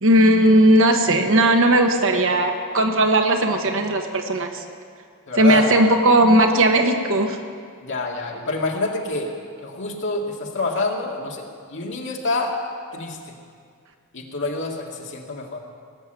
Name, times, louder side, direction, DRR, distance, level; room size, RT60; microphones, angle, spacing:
voice 1, 0.0-4.6 5.4-7.4, right 1 dB, 65° right, 4 dB, 1.3 m, -17 dB
voice 2, 5.3-5.8 7.8-9.3 9.6-12.5 12.9-13.3 14.1-15.6, left 2 dB, 60° left, -1 dB, 2.1 m, -27 dB
18.5 x 7.3 x 9.1 m, 2.2 s
head